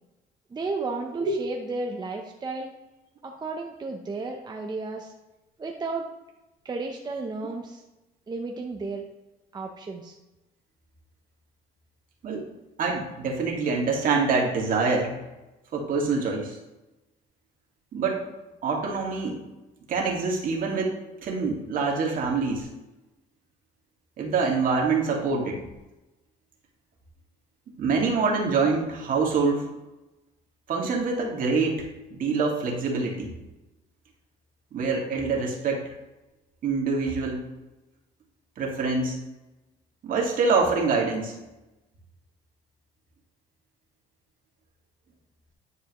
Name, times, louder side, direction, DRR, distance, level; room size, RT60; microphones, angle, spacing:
voice 1, 0.5-2.7 3.2-5.1 5.6-6.1 6.6-7.8 8.3-9.0 9.5-10.1, right 3 dB, 25° right, 1 dB, 0.7 m, -33 dB
voice 2, 12.8-15.2 15.7-16.6 17.9-18.2 18.6-19.4 19.9-20.9 21.2-22.7 24.2-25.6 27.8-29.6 30.7-33.3 34.7-35.9 36.6-37.4 38.6-39.2 40.0-41.3, right 4 dB, 55° right, -1 dB, 2.0 m, -25 dB
9.7 x 4.6 x 3.1 m, 1.0 s
cardioid pair, 110°, 17 cm